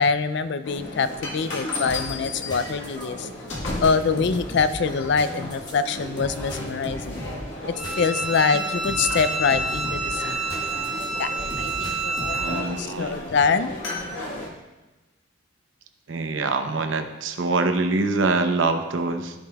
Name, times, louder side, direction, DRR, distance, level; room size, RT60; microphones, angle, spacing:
voice 1, 0.0-3.3 3.8-7.2 7.7-10.4 11.2-13.7, left 5 dB, 65° left, 12 dB, 0.4 m, -25 dB
sound 1, 0.6-14.5, left 1 dB, 90° left, 1.6 m, -35 dB
sound 2, 1.8-11.1 11.5-12.6, equal, 25° left, 1.2 m, -38 dB
Bowed string instrument, 7.7-12.7, right 3 dB, 5° right, 1.5 m, -28 dB
voice 2, 12.4-13.2 16.1-19.3, right 3 dB, 80° right, 7 dB, 0.7 m, -24 dB
14.0 x 5.2 x 2.3 m, 1.1 s
head